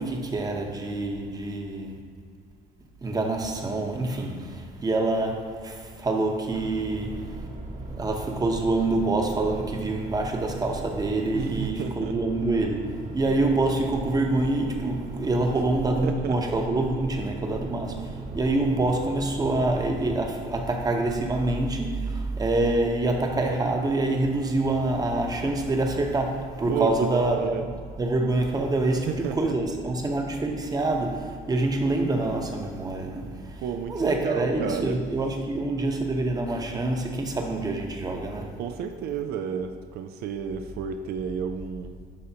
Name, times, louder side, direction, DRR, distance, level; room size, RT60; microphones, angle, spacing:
voice 1, 0.0-2.0 3.0-7.2 8.0-27.6 28.0-33.6 33.9-38.6, right 2 dB, 20° right, 1.0 m, -26 dB
sound 1, 6.5-20.2, right 3 dB, 50° right, 1.3 m, -38 dB
voice 2, 11.3-12.2 15.1-15.6 16.0-16.3 26.7-27.7 29.1-29.5 33.6-35.0 38.6-42.0, right 7 dB, 70° right, 0.5 m, -32 dB
11.5 x 5.0 x 2.8 m
cardioid pair, 110°, 17 cm